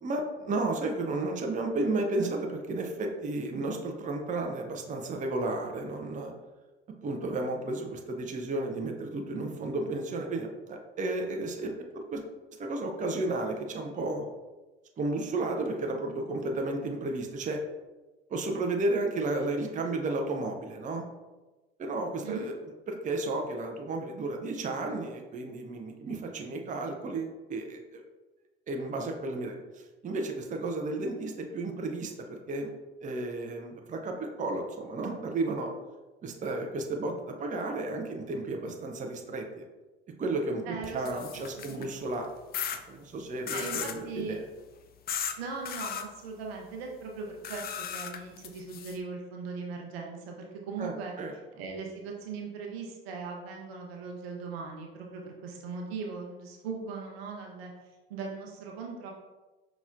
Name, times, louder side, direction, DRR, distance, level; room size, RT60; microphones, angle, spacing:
voice 1, 0.0-6.3 7.0-12.2 12.6-14.2 15.0-17.6 18.3-21.0 21.8-22.5 22.9-28.0 28.7-32.7 33.0-35.7 36.2-39.6 40.2-42.3 42.7-44.4 50.8-51.3, right 2 dB, 25° right, 2 dB, 0.6 m, -33 dB
voice 2, 40.7-41.3 41.5-41.9 43.5-44.3 45.4-50.4 50.7-51.1 51.6-57.7 58.1-59.1, right 4 dB, 75° right, 0 dB, 0.8 m, -39 dB
sound 1, 40.8-41.9 42.5-42.8 43.5-44.0 45.1-45.4 45.7-46.0 47.4-49.0, left 8 dB, 30° left, 0.4 m, -36 dB
5.5 x 3.0 x 2.5 m, 1.2 s
figure-of-eight pair, 60°, 31 cm